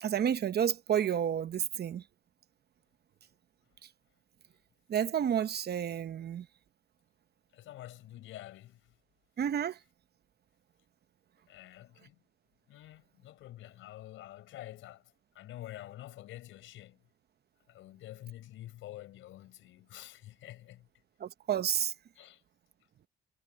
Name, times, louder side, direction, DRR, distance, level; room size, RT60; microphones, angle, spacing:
voice 1, 0.0-2.0 4.9-6.5 9.4-9.8 21.2-21.9, right 9 dB, 55° right, 1.0 m, -30 dB
voice 2, 7.5-8.8 11.5-12.1 12.7-15.0 15.3-17.0 17.7-20.9 22.2-22.4, left 14 dB, 90° left, 4.8 m, -48 dB
cardioid pair, 90°, 20 cm